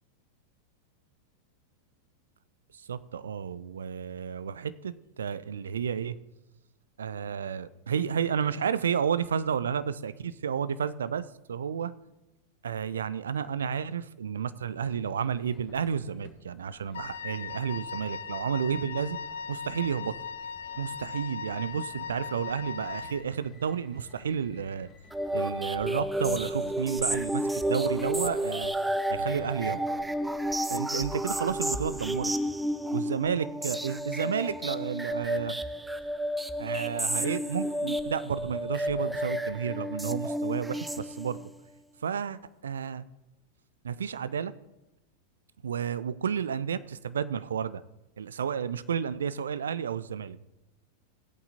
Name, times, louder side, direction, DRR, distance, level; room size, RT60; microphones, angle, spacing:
voice 1, 2.9-6.2 7.0-11.9 12.6-19.2 19.5-20.1 20.8-24.9 25.3-28.7 29.1-29.8 30.7-32.3 32.9-35.7 36.6-41.5 42.0-43.0 43.8-44.5 45.6-47.8 48.2-50.5, right 7 dB, 65° right, 16 dB, 0.4 m, -31 dB
sound 1, 14.8-30.6, left 5 dB, 30° left, 1.2 m, -57 dB
Wind instrument woodwind instrument, 16.9-23.3, left 6 dB, 65° left, 0.5 m, -39 dB
sound 2, 25.1-41.5, equal, 5° right, 0.4 m, -31 dB
17.0 x 8.3 x 2.8 m, 0.99 s
figure-of-eight pair, 90°, 0 cm